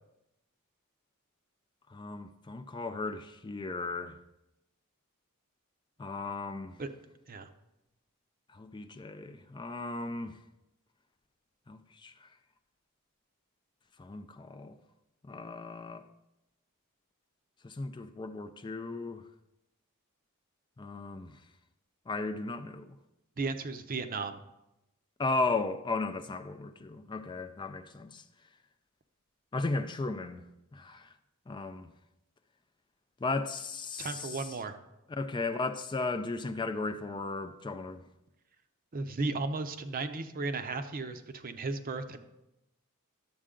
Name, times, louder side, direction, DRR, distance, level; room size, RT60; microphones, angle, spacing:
voice 1, 1.9-4.2 6.0-6.8 8.5-10.4 11.7-12.3 14.0-14.8 15.2-16.1 17.6-19.2 20.8-21.4 22.1-23.0 25.2-28.2 29.5-30.4 30.7-31.1 31.5-31.9 33.2-34.5 35.2-38.0, left 3 dB, 20° left, 0.4 m, -35 dB
voice 2, 23.4-24.4 34.0-34.7 38.9-42.2, right 3 dB, 40° right, 0.6 m, -35 dB
11.5 x 7.4 x 3.7 m
head